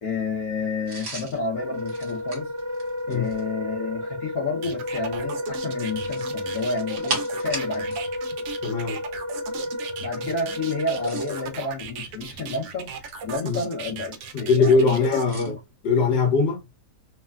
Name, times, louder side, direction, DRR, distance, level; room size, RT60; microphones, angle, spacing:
voice 1, 0.0-2.5 3.1-8.0 10.0-12.9 13.2-15.6, left 3 dB, 65° left, 1.4 m, -30 dB
sound 1, 0.9-3.5 5.9-8.1 8.4-8.5 10.8-11.5 12.2-13.4 15.3-15.5, right 3 dB, 50° right, 1.2 m, -36 dB
Wind instrument woodwind instrument, 1.5-11.6, left 1 dB, 20° right, 1.0 m, -32 dB
sound 2, 4.6-15.3, right 5 dB, 70° right, 0.8 m, -37 dB
voice 2, 8.6-9.0 13.4-13.6 14.3-15.5 15.8-16.6, left 4 dB, 85° left, 1.6 m, -21 dB
3.4 x 2.2 x 2.3 m
omnidirectional pair, 1.8 m